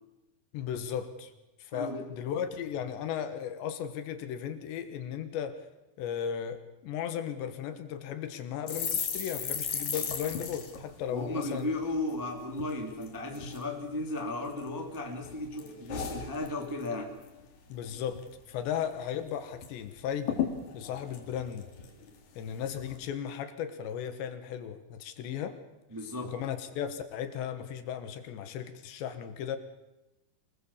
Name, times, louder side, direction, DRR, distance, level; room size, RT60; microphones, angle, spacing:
voice 1, 0.5-1.3 1.6-5.7 6.0-11.7 17.7-20.4 20.7-21.7 22.4-25.6 26.2-29.6, left 8 dB, 75° left, 9 dB, 3.5 m, -36 dB
voice 2, 1.7-2.0 11.1-17.1 25.9-26.3, left 2 dB, 10° right, 2 dB, 1.3 m, -35 dB
sound 1, 8.7-12.2 12.5-12.7 13.0-13.6 14.2-15.0 15.2-16.9 17.2-17.5 17.7-18.3 18.7-18.8 19.0-19.7 20.0-20.1 20.3-22.2 22.6-23.0, left 7 dB, 50° left, 3.1 m, -36 dB
26.0 x 20.0 x 7.3 m, 0.98 s
omnidirectional pair, 5.3 m